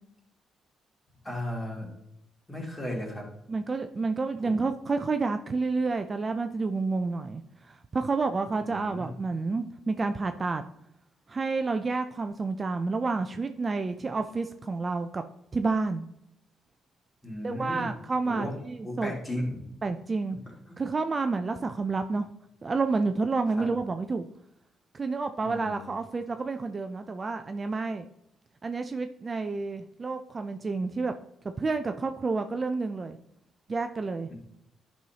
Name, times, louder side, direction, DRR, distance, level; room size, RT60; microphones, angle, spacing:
voice 1, 1.2-1.9 2.5-3.3 4.4-4.6 8.6-9.1 17.2-17.9 18.3-18.5 18.8-19.7 20.5-20.8 23.6-23.7 25.4-25.9 34.3-34.4, left 1 dB, 20° left, -2 dB, 2.6 m, -35 dB
voice 2, 3.5-10.6 11.3-15.2 15.5-16.0 17.4-19.1 19.8-20.4 20.8-22.3 22.6-24.3 24.9-28.1 28.6-31.1 31.6-33.2 33.7-34.3, right 3 dB, 30° right, 7 dB, 0.4 m, -29 dB
10.0 x 5.5 x 2.9 m, 0.81 s
cardioid pair, 90°, 0 cm